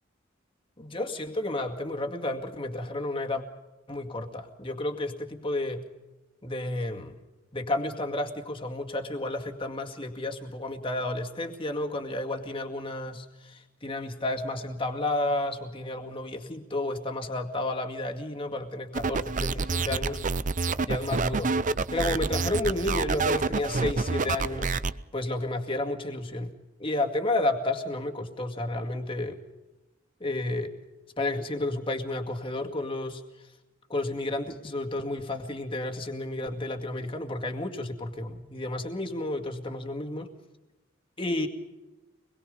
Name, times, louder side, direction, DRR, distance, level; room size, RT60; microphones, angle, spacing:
voice 1, 0.8-3.4 3.9-5.8 6.4-7.2 7.5-20.2 20.9-21.6 21.9-24.8 25.1-26.5 26.8-29.4 30.2-30.7 31.2-33.2 33.9-40.3 41.2-41.5, left 2 dB, 25° left, 4 dB, 2.1 m, -31 dB
sound 1, 18.9-24.9, right 4 dB, 40° right, 0.6 m, -28 dB
25.0 x 21.5 x 5.4 m, 1.1 s
head